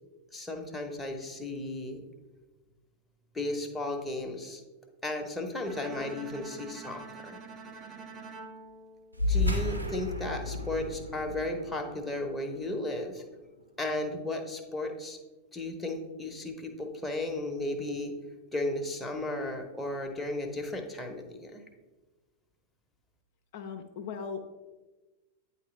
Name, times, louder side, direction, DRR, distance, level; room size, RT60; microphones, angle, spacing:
voice 1, 0.3-2.0 3.3-4.6 5.0-7.4 9.2-13.2 13.8-15.2 15.5-18.1 18.5-21.6, left 2 dB, 10° left, 2 dB, 0.8 m, -34 dB
Bowed string instrument, 5.6-9.8, right 4 dB, 30° right, 0.7 m, -47 dB
sound 1, 9.1-14.0, left 2 dB, 85° right, 0.6 m, -33 dB
voice 2, 23.5-24.4, left 6 dB, 50° left, 4 dB, 0.5 m, -38 dB
8.9 x 3.9 x 3.1 m, 1.2 s
figure-of-eight pair, 90°, 0 cm